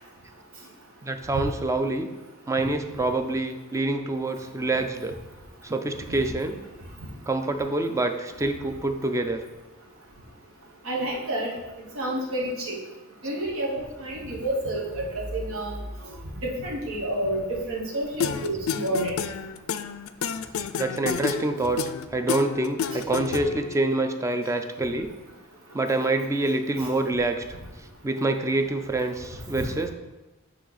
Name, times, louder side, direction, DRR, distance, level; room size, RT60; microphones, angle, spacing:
voice 1, 1.0-2.1 2.5-5.2 5.6-6.6 7.3-9.5 20.8-21.8 22.1-25.1 25.7-27.4 28.0-29.9, right 2 dB, 15° right, 7 dB, 0.4 m, -26 dB
voice 2, 10.8-11.5 11.9-12.8 13.2-15.8 16.4-19.1 29.5-29.7, right 1 dB, 85° right, -2 dB, 1.2 m, -29 dB
sound 1, 14.9-17.6, left 1 dB, 45° right, 2.2 m, -40 dB
sound 2, 18.2-23.7, left 7 dB, 75° left, 0.3 m, -30 dB
8.8 x 3.1 x 4.0 m, 1.1 s
head